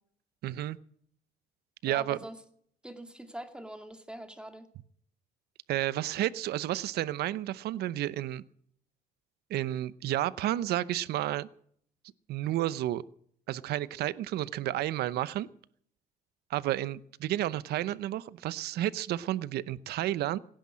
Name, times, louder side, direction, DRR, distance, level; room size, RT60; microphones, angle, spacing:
voice 1, 0.4-0.8 1.8-2.2 5.7-8.4 9.5-11.5 12.3-13.0 13.5-15.5 16.5-20.4, right 14 dB, 70° right, 18 dB, 0.8 m, -31 dB
voice 2, 1.8-2.4 2.8-4.7, right 1 dB, 5° right, 7 dB, 2.3 m, -43 dB
17.5 x 10.5 x 7.5 m, 0.62 s
cardioid pair, 110°, 17 cm